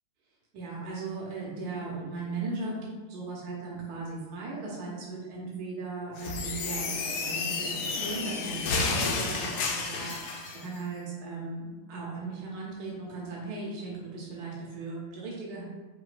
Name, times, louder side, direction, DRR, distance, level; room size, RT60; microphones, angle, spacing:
voice 1, 0.5-15.6, right 3 dB, 80° right, -4 dB, 1.3 m, -37 dB
sound 1, 6.2-10.6, left 4 dB, 90° left, 1.2 m, -31 dB
5.5 x 2.7 x 2.5 m, 1.3 s
omnidirectional pair, 1.7 m